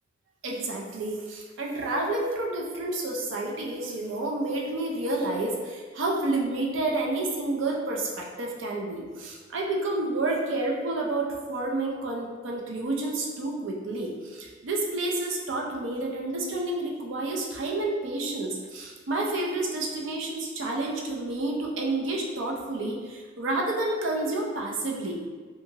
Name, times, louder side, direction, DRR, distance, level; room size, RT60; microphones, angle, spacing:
voice 1, 0.4-25.3, right 2 dB, 75° right, -1 dB, 0.5 m, -30 dB
2.7 x 2.4 x 2.8 m, 1.5 s
head